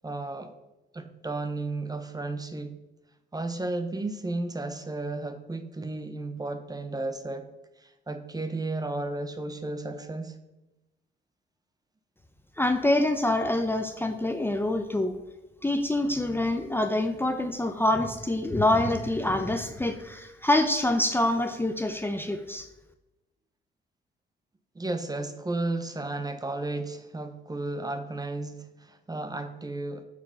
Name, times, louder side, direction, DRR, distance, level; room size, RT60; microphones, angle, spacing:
voice 1, 0.0-0.5 0.9-2.8 3.3-7.5 7.8-10.3 24.7-30.0, right 2 dB, 20° right, 9 dB, 0.9 m, -33 dB
voice 2, 12.6-15.1 15.6-22.7, left 1 dB, 10° left, 6 dB, 0.7 m, -26 dB
8.3 x 5.0 x 5.6 m, 0.97 s
cardioid pair, 90°, 20 cm